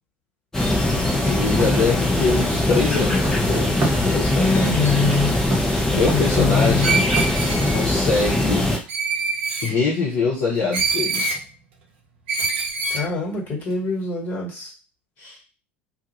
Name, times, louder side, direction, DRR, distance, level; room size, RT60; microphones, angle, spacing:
sound 1, 0.5-8.8, left 1 dB, 10° left, 0.7 m, -21 dB
sound 2, 0.5-7.3, right 2 dB, 35° right, 0.9 m, -32 dB
voice 1, 1.2-3.8 4.0-4.9 5.9-7.1 7.7-8.7 9.6-11.2 15.2-15.4, left 4 dB, 50° left, -4 dB, 0.7 m, -23 dB
voice 2, 4.3-5.5 6.1-6.9 12.9-14.7, left 3 dB, 30° left, -2 dB, 1.3 m, -24 dB
Screech, 6.8-7.8 8.9-9.7 10.7-11.4 12.3-13.0, right 4 dB, 65° right, 0.6 m, -24 dB
2.3 x 2.0 x 2.9 m, 0.32 s
figure-of-eight pair, 70°, 6 cm